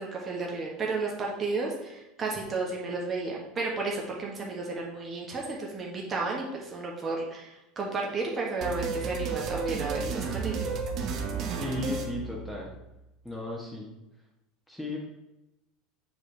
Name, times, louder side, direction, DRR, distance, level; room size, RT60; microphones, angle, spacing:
voice 1, 0.0-10.6, right 3 dB, 30° right, -2 dB, 1.5 m, -33 dB
sound 1, 8.6-12.9, right 5 dB, 45° right, 0.9 m, -32 dB
voice 2, 11.6-12.7 13.2-13.9 14.7-15.0, left 2 dB, 5° left, -3 dB, 1.5 m, -35 dB
7.3 x 4.8 x 3.4 m, 0.93 s
figure-of-eight pair, 75°, 0 cm